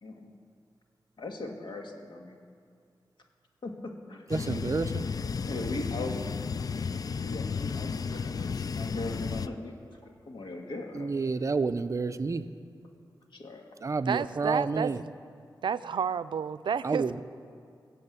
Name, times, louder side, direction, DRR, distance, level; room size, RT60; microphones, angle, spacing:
voice 1, 0.0-0.3 1.2-2.3 3.6-4.2 5.5-6.3 7.2-9.7 10.0-11.1 13.3-13.6, left 2 dB, 85° left, 2 dB, 1.8 m, -39 dB
sound 1, 4.3-9.5, left 5 dB, 50° left, 0.4 m, -33 dB
voice 2, 4.3-5.0 11.0-12.4 13.8-15.0 16.8-17.2, right 4 dB, 40° right, 11 dB, 0.6 m, -29 dB
voice 3, 14.1-15.1 15.6-17.2, right 7 dB, 90° right, 14 dB, 0.4 m, -31 dB
20.5 x 7.8 x 8.2 m, 2.3 s
wide cardioid pair, 130°, 8 cm